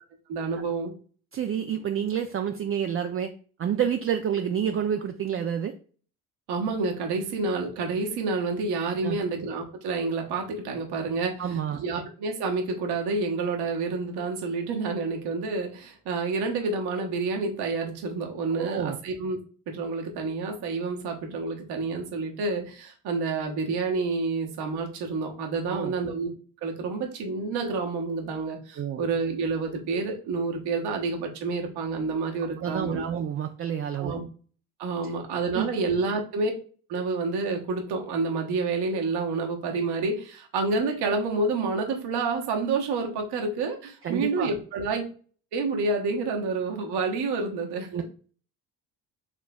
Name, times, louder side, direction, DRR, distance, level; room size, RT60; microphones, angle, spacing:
voice 1, 0.3-0.9 6.5-19.4 19.7-26.3 26.6-33.2 34.0-34.2 34.8-36.5 36.9-45.0 45.5-48.0, right 3 dB, 75° right, 2 dB, 1.1 m, -29 dB
voice 2, 1.3-3.3 3.6-5.7 9.0-9.2 11.4-11.8 18.5-19.0 25.7-25.9 28.8-29.1 32.6-34.2 35.0-35.1 35.5-35.7 44.0-44.5 47.9-48.0, right 8 dB, 35° right, 5 dB, 0.4 m, -29 dB
4.2 x 3.2 x 2.3 m, 0.40 s
supercardioid pair, 65°, 40 cm